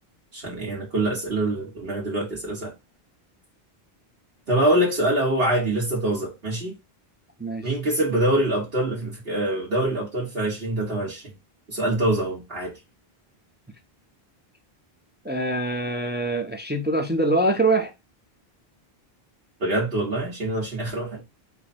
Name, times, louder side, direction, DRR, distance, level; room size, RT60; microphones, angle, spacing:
voice 1, 0.3-2.7 4.5-6.8 7.6-11.2 11.7-12.7 19.6-21.2, right 1 dB, 70° right, 1.6 m, -24 dB
voice 2, 7.4-7.7 15.2-17.9, right 2 dB, 15° right, 0.3 m, -24 dB
4.8 x 2.1 x 4.2 m
omnidirectional pair, 1.0 m